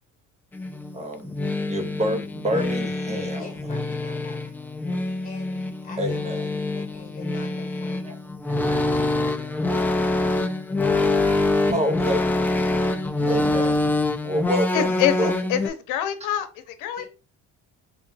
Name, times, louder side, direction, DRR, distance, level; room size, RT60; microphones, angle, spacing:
sound 1, 0.5-15.7, left 2 dB, 5° left, 0.3 m, -25 dB
voice 1, 0.9-1.3 1.6-3.5 6.0-6.5 8.0-8.2 8.5-8.8 11.7-12.2 13.2-13.8 14.2-14.9 15.2-15.3, equal, 20° right, 0.8 m, -27 dB
voice 2, 3.4-4.6 5.2-8.2 8.9-9.7 17.0-17.1, left 4 dB, 25° left, 1.3 m, -44 dB
voice 3, 14.7-17.1, left 10 dB, 80° left, 0.8 m, -26 dB
3.6 x 2.3 x 4.0 m
cardioid pair, 150°, 31 cm